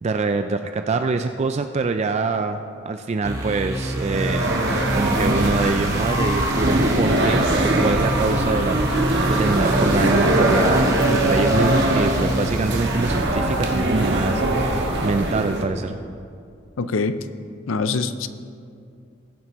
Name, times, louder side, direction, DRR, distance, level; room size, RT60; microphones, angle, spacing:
voice 1, 0.0-4.6 4.9-8.8 9.3-16.0, right 3 dB, 35° right, 7 dB, 0.3 m, -25 dB
sound 1, 3.2-13.2, right 1 dB, 15° right, 1.1 m, -28 dB
sound 2, 4.0-15.6, right 1 dB, 60° right, 1.3 m, -21 dB
voice 2, 16.8-17.2 17.7-18.3, left 4 dB, 75° left, 12 dB, 0.5 m, -23 dB
20.0 x 7.6 x 3.0 m, 2.4 s
head